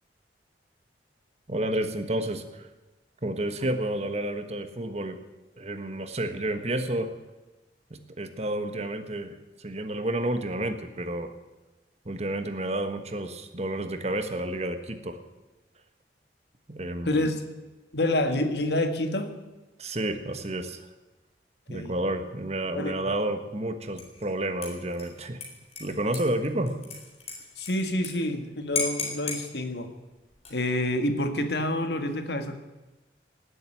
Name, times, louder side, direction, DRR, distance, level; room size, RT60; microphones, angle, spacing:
voice 1, 1.5-2.7 3.2-5.2 5.6-7.1 7.9-11.3 12.0-15.2 16.7-17.2 19.8-20.8 21.7-25.4 25.8-26.8, right 1 dB, 40° right, 8 dB, 1.3 m, -30 dB
voice 2, 17.9-19.3 21.7-21.9 22.7-23.1 27.6-29.9 30.5-32.6, left 1 dB, 65° left, 7 dB, 1.8 m, -28 dB
Dishes pots and pans / Liquid, 24.0-24.3 24.6-28.1 28.4-28.5 28.8-29.4 30.3-30.8, left 4 dB, 35° left, 4.0 m, -35 dB
18.5 x 8.0 x 9.2 m, 1.1 s
head